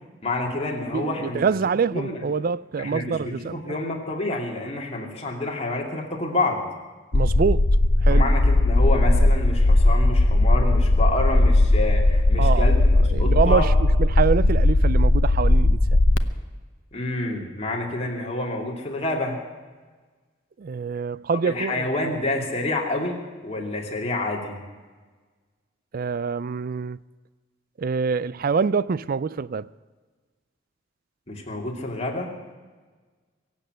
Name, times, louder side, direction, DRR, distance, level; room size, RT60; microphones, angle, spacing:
voice 1, 0.2-1.4 1.9-2.2 2.8-6.6 8.1-13.7 16.9-19.4 21.4-24.6 31.3-32.3, left 2 dB, 35° left, 2.8 m, -28 dB
voice 2, 0.9-3.6 7.1-7.6 8.0-8.3 12.4-16.0 20.6-21.9 25.9-27.0 27.8-29.7, right 5 dB, 45° right, 0.4 m, -25 dB
sound 1, 7.1-16.2, left 2 dB, 75° left, 0.8 m, -18 dB
23.0 x 7.9 x 7.9 m
head